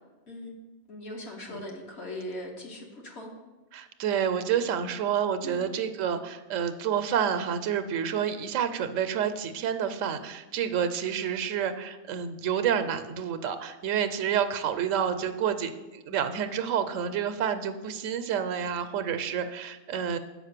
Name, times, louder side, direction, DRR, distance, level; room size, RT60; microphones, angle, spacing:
voice 1, 0.9-3.3 5.4-5.7, left 1 dB, 55° left, 0 dB, 1.5 m, -40 dB
voice 2, 3.7-20.2, right 8 dB, 80° right, 10 dB, 1.0 m, -29 dB
6.4 x 5.2 x 6.6 m, 1.1 s
omnidirectional pair, 1.3 m